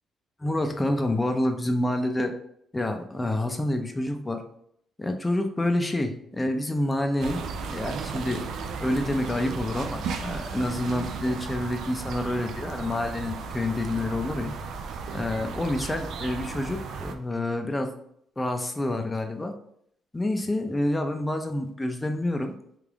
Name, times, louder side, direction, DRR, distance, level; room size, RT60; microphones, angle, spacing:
voice 1, 0.4-2.3 2.7-4.4 5.0-7.4 7.7-8.4 8.8-14.5 15.1-17.9 18.4-19.5 20.1-22.5, left 1 dB, 15° left, 5 dB, 0.5 m, -28 dB
sound 1, 7.2-17.1, right 5 dB, 75° right, 0.4 m, -35 dB
3.3 x 2.4 x 3.5 m, 0.69 s
cardioid pair, 90°, 0 cm